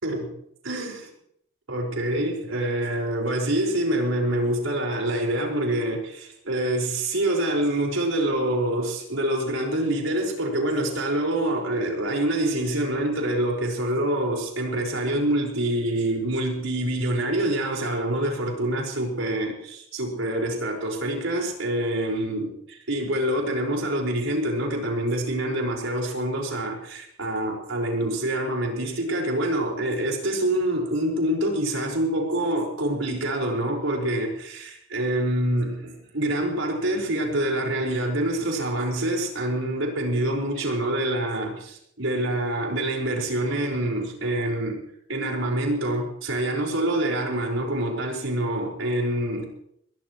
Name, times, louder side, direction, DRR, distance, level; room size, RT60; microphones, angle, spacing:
voice 1, 0.6-1.1 1.7-44.8 45.1-49.4, right 1 dB, 80° right, 0 dB, 5.3 m, -26 dB
21.0 x 21.0 x 3.2 m, 0.70 s
head